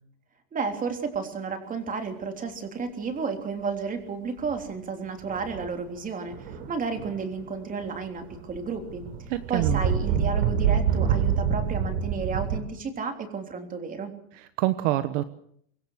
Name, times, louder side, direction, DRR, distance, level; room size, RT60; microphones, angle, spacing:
voice 1, 0.5-9.1 9.5-14.1, right 5 dB, 20° right, 5 dB, 3.4 m, -32 dB
sound 1, 4.4-4.7 5.3-5.8 6.3-7.5 7.8-12.6, right 7 dB, 70° right, 5.5 m, -27 dB
voice 2, 9.3-9.8 14.3-15.2, right 15 dB, 55° right, 12 dB, 1.3 m, -26 dB
25.5 x 21.5 x 6.5 m, 0.68 s
supercardioid pair, 170°, 45 cm